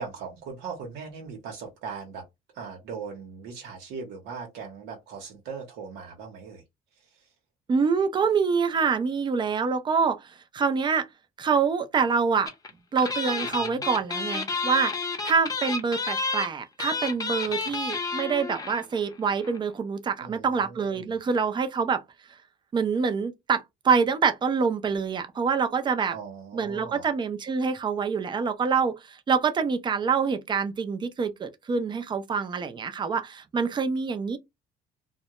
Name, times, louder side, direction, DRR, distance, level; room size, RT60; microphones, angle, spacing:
voice 1, 0.0-2.3 2.5-6.6 7.0-7.3 13.6-13.8 20.2-21.2 26.1-27.1, right 5 dB, 85° right, 0.8 m, -39 dB
voice 2, 7.7-11.1 11.4-12.5 12.9-14.9 15.2-22.0 22.7-26.2 26.5-34.4, right 5 dB, 25° right, 0.5 m, -26 dB
sound 1, 12.5-12.7 13.0-18.9 19.1-19.2 19.4-19.6, left 4 dB, 20° left, 0.6 m, -30 dB
2.2 x 2.1 x 2.8 m
cardioid pair, 110°, 17 cm